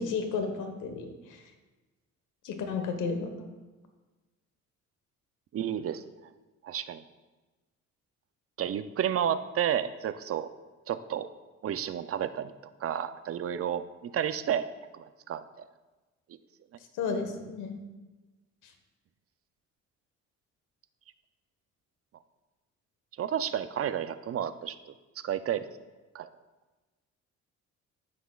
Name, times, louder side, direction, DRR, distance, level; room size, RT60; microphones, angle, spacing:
voice 1, 0.0-1.4 2.4-3.5 16.9-17.8 18.6-18.7, left 5 dB, 85° left, 6 dB, 1.2 m, -33 dB
voice 2, 5.5-6.0 6.6-7.0 8.6-10.5 10.9-11.3 11.6-12.5 12.8-15.6 23.2-25.7 26.1-26.3, right 9 dB, 50° right, 12 dB, 0.5 m, -31 dB
15.0 x 6.0 x 2.4 m, 1.2 s
cardioid pair, 90°, 30 cm